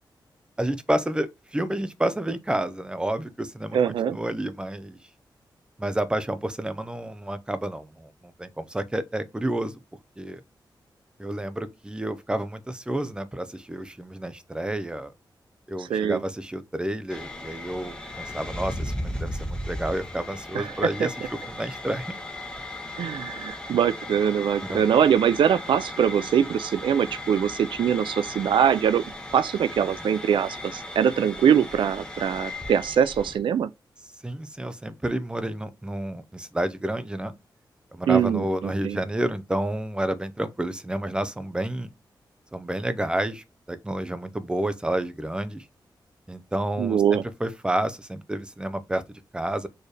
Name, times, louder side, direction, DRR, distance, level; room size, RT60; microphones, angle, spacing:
voice 1, 0.6-5.0 5.8-8.1 8.4-9.7 10.2-10.4 11.2-15.1 15.7-22.1 23.0-23.2 24.6-24.8 29.9-30.0 34.2-37.3 37.9-41.9 42.5-45.6 46.3-49.7, right 1 dB, 10° right, 0.6 m, -30 dB
voice 2, 3.7-4.2 15.8-16.2 20.5-20.7 23.0-29.0 29.3-33.7 38.1-39.0 46.8-47.2, right 8 dB, 85° right, 0.4 m, -23 dB
sound 1, 17.1-33.4, left 1 dB, 10° left, 1.0 m, -36 dB
4.5 x 3.1 x 3.3 m
wide cardioid pair, 140°, 8 cm